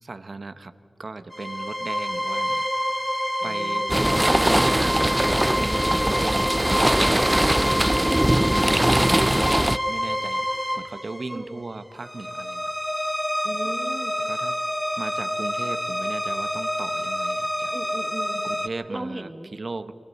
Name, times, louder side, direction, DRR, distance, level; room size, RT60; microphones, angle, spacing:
voice 1, 0.0-2.6 3.4-3.9 4.3-7.8 9.4-12.7 14.3-14.6 15.0-17.7 18.4-19.9, right 3 dB, 60° right, 12 dB, 1.0 m, -37 dB
sound 1, 1.3-18.7, equal, 5° left, 1.0 m, -27 dB
voice 2, 3.4-4.2 11.3-11.6 13.4-14.2 17.7-18.5 18.9-19.5, right 1 dB, 30° right, 6 dB, 1.9 m, -37 dB
sound 2, 3.9-9.8, right 1 dB, 15° right, 0.5 m, -21 dB
30.0 x 21.5 x 4.2 m, 2.8 s
cardioid pair, 45°, 0 cm